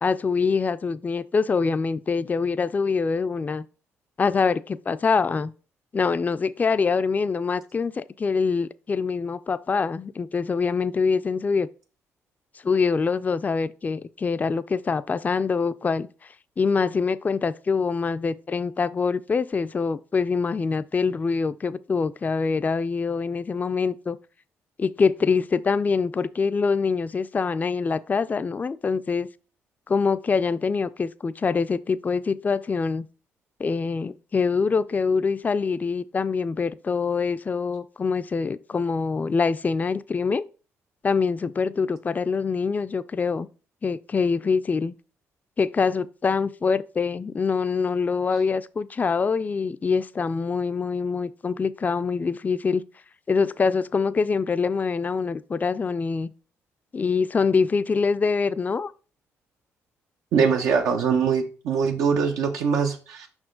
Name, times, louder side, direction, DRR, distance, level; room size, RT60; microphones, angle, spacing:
voice 1, 0.0-3.6 4.2-5.5 5.9-11.7 12.6-24.2 24.8-29.3 29.9-33.1 33.6-40.4 41.0-43.5 43.8-44.9 45.6-52.8 53.3-56.3 56.9-58.9, left 5 dB, 30° left, 0.3 m, -24 dB
voice 2, 60.3-63.3, right 6 dB, 85° right, 0.8 m, -22 dB
5.6 x 4.8 x 3.8 m
cardioid pair, 75°, 6 cm